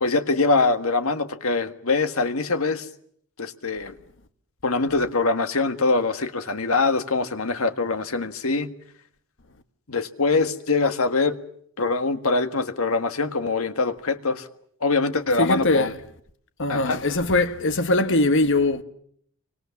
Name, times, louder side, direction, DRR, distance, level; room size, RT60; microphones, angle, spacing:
voice 1, 0.0-2.9 3.4-3.9 4.6-8.7 9.9-11.4 11.8-14.5 14.8-15.9 16.7-17.0, left 3 dB, 80° left, 1.7 m, -23 dB
voice 2, 15.4-16.0 16.6-18.8, left 2 dB, 60° left, 1.4 m, -21 dB
28.5 x 25.0 x 7.2 m
head